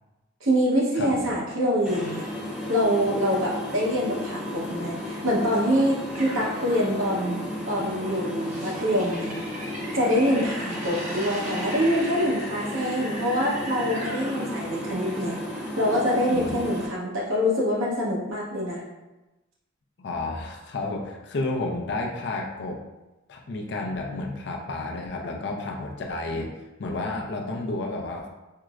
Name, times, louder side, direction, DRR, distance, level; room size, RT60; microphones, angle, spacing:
voice 1, 0.4-2.3 2.7-9.4 9.9-15.4 15.8-18.8, equal, 80° right, -4 dB, 0.9 m, -25 dB
sound 1, 1.9-16.9, left 1 dB, 5° right, 0.6 m, -34 dB
sound 2, 6.1-14.9, equal, 35° right, 0.8 m, -39 dB
voice 2, 20.0-22.8 23.3-26.5 26.8-28.3, left 2 dB, 55° left, 1 dB, 0.4 m, -31 dB
4.5 x 2.0 x 2.4 m, 1.1 s
head